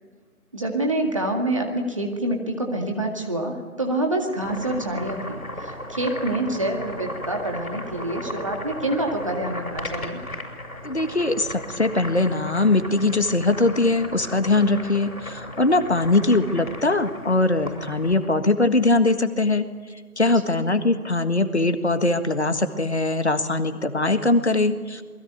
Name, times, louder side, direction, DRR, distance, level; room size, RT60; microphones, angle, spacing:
voice 1, 0.5-10.2, right 1 dB, 20° right, 2 dB, 2.1 m, -27 dB
Boiling, 4.2-18.3, left 1 dB, 70° left, 6.6 m, -36 dB
voice 2, 10.8-19.7 20.2-25.0, left 2 dB, 45° left, 9 dB, 1.7 m, -21 dB
27.5 x 21.0 x 9.2 m, 1.4 s
figure-of-eight pair, 170°, 44 cm